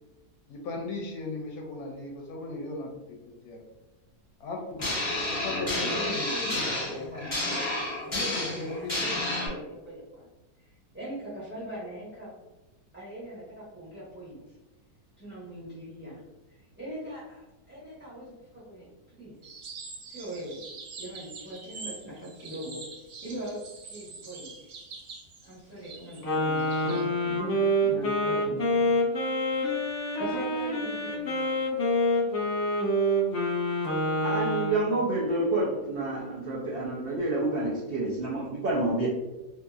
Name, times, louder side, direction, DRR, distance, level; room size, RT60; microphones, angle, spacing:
voice 1, 0.5-2.9 3.4-3.6 4.4-4.8 5.1-7.3 8.1-9.1, left 3 dB, 70° left, 0 dB, 1.0 m, -37 dB
sound 1, 4.8-9.5, left 1 dB, 25° left, 0.7 m, -30 dB
voice 2, 5.7-10.3 10.9-12.3 12.9-14.6 15.2-16.2 16.7-19.4 20.1-20.6 21.0-22.8 23.2-24.7 25.4-28.9 30.2-31.5, right 1 dB, 10° right, -8 dB, 0.9 m, -41 dB
sound 2, 19.4-27.0, right 4 dB, 65° right, 0.8 m, -45 dB
Wind instrument woodwind instrument, 26.2-34.8, equal, 40° left, 1.1 m, -27 dB
voice 3, 34.2-39.1, right 2 dB, 80° right, -5 dB, 0.5 m, -28 dB
2.8 x 2.6 x 2.3 m, 1.0 s
omnidirectional pair, 1.7 m